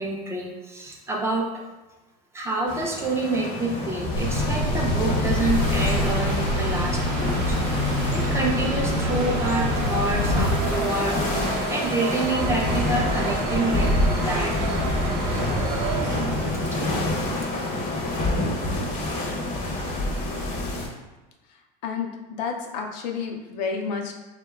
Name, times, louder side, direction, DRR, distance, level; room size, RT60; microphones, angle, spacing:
voice 1, 0.0-1.5 2.3-13.9 14.2-14.5 16.7-16.8, right 2 dB, 15° right, -1 dB, 0.3 m, -28 dB
sound 1, 2.7-20.9, left 1 dB, 40° left, 0.5 m, -27 dB
Thunder / Bicycle, 4.1-10.6, left 2 dB, 75° left, 0.9 m, -26 dB
sound 2, 5.3-17.6, right 3 dB, 60° right, 0.5 m, -32 dB
voice 2, 22.4-24.1, left 5 dB, 90° left, 3 dB, 0.4 m, -30 dB
2.7 x 2.1 x 2.3 m, 1.1 s
supercardioid pair, 115°, 21 cm